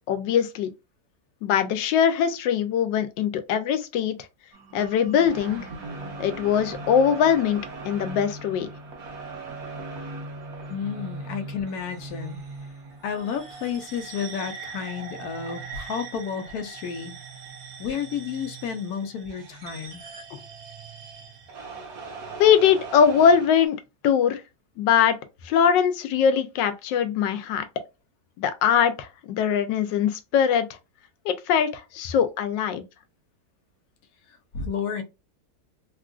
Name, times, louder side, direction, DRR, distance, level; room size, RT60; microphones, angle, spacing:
voice 1, 0.1-0.7 1.4-4.2 4.7-5.6 6.2-7.6 7.8-8.7 22.4-23.8 24.0-24.4 24.8-25.2 25.4-27.6 28.4-30.7 31.3-32.8, left 8 dB, 85° left, 1.3 m, -21 dB
sound 1, 4.5-23.7, right 3 dB, 60° right, 1.4 m, -40 dB
voice 2, 10.7-12.4 13.0-17.2 17.8-20.0 34.5-35.0, left 7 dB, 65° left, 1.1 m, -31 dB
3.6 x 2.4 x 2.3 m
omnidirectional pair, 1.9 m